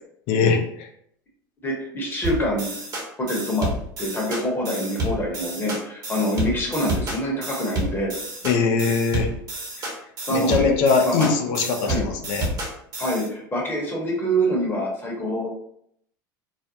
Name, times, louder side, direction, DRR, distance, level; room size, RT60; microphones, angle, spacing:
voice 1, 0.3-0.9 8.4-9.3 10.3-12.5, left 4 dB, 60° left, 4 dB, 0.5 m, -21 dB
voice 2, 1.6-2.7 3.2-3.7 4.0-8.1 10.3-10.7 11.0-11.3 11.8-12.1 13.0-15.5, equal, 20° left, -2 dB, 1.0 m, -25 dB
sound 1, 2.2-13.3, right 1 dB, 35° right, 1.0 m, -30 dB
2.4 x 2.1 x 2.7 m, 0.70 s
hypercardioid pair, 95°, 11 cm